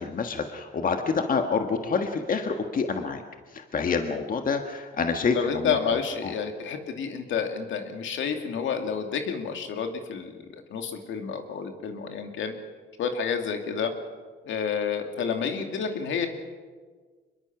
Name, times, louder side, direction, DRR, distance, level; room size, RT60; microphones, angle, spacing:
voice 1, 0.0-3.2 3.5-5.8 6.2-6.3, left 5 dB, 45° left, 5 dB, 1.5 m, -27 dB
voice 2, 5.3-12.5 13.0-13.9 14.5-16.3, left 6 dB, 75° left, 5 dB, 2.5 m, -29 dB
24.5 x 22.0 x 6.1 m, 1.5 s
cardioid pair, 90°, 20 cm